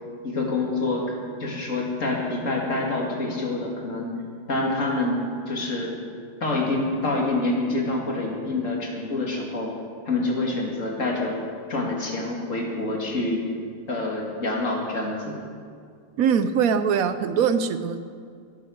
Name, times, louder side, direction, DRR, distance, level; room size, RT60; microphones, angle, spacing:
voice 1, 0.2-1.1 1.4-4.1 4.5-5.9 6.4-9.7 10.1-11.4 11.7-13.4 13.9-15.4, left 2 dB, 65° left, -1 dB, 2.6 m, -26 dB
voice 2, 16.2-18.0, right 7 dB, 90° right, 11 dB, 1.2 m, -22 dB
16.5 x 8.6 x 6.5 m, 2.2 s
omnidirectional pair, 1.4 m